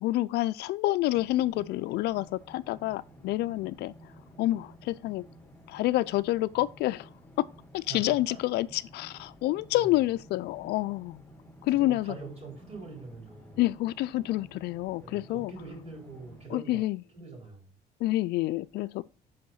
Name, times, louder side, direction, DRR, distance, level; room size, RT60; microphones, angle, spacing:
voice 1, 0.0-3.9 4.4-5.2 5.7-7.1 7.7-11.2 11.6-12.2 13.6-15.5 16.5-17.0 18.0-19.0, left 16 dB, 75° left, 0.4 m, -28 dB
sound 1, 1.1-16.4, equal, 10° left, 1.8 m, -53 dB
voice 2, 7.9-8.4 9.7-9.9 11.7-13.6 15.0-16.8 17.1-17.7, right 3 dB, 40° right, 4.5 m, -44 dB
5.7 x 5.2 x 5.5 m
cardioid pair, 110°, 17 cm